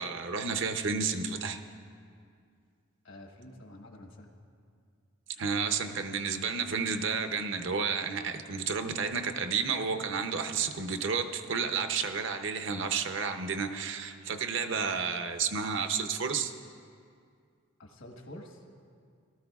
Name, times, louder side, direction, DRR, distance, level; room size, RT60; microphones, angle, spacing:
voice 1, 0.0-1.6 5.4-16.5, right 5 dB, 60° right, 7 dB, 0.7 m, -31 dB
voice 2, 3.0-4.3 17.8-18.6, left 1 dB, 70° left, 2 dB, 1.4 m, -48 dB
18.5 x 13.0 x 2.4 m, 2.2 s
head